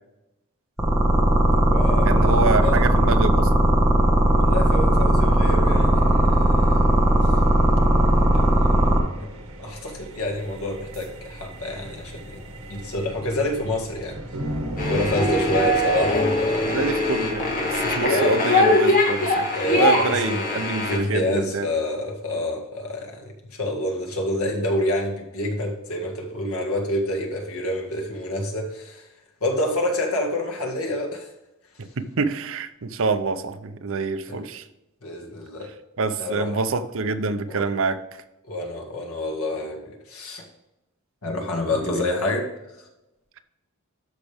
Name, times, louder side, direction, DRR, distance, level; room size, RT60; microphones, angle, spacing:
sound 1, 0.8-9.0, right 1 dB, 5° right, 1.5 m, -17 dB
sound 2, 1.4-18.0, right 1 dB, 80° right, 1.6 m, -38 dB
voice 1, 1.5-2.8 4.4-6.8 8.3-8.7 9.1-12.4 12.7-14.2 14.8-16.8 18.1-18.3 19.5-23.2 23.5-29.0 29.4-31.3 34.3-34.4 35.0-35.7 36.2-36.6 37.5-37.7 38.5-40.4 41.2-42.5, left 1 dB, 75° left, 1 dB, 1.9 m, -28 dB
voice 2, 2.1-3.5 16.6-21.7 31.8-34.6 36.0-38.0 41.8-41.9, right 4 dB, 60° right, 11 dB, 0.6 m, -26 dB
sound 3, 14.8-21.0, left 1 dB, 40° left, 1.9 m, -22 dB
13.0 x 5.2 x 3.5 m, 0.96 s
head